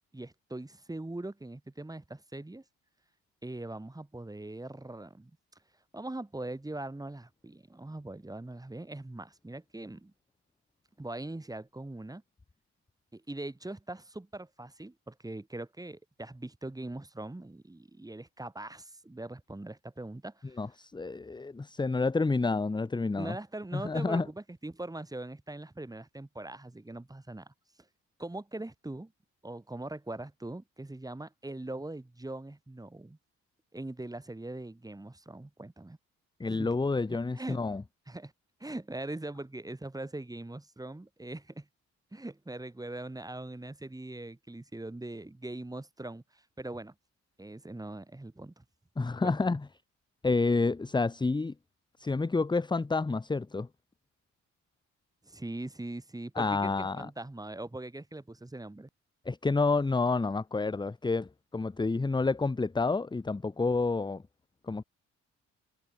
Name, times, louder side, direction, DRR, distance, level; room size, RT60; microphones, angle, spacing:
voice 1, 0.1-2.6 3.4-5.3 5.9-10.1 11.0-12.2 13.1-20.6 23.2-27.5 28.2-29.1 29.4-33.2 33.7-36.0 36.5-36.8 37.1-37.6 38.1-38.3 38.6-41.7 42.1-46.9 47.4-48.6 49.2-49.4 55.2-58.9, right 2 dB, 10° right, 5.4 m, -41 dB
voice 2, 20.6-23.4 23.7-24.3 36.4-37.8 49.0-49.6 50.2-51.5 52.0-53.7 56.4-57.1 59.3-64.2 64.7-64.8, left 3 dB, 15° left, 0.9 m, -29 dB
cardioid pair, 90°, 30 cm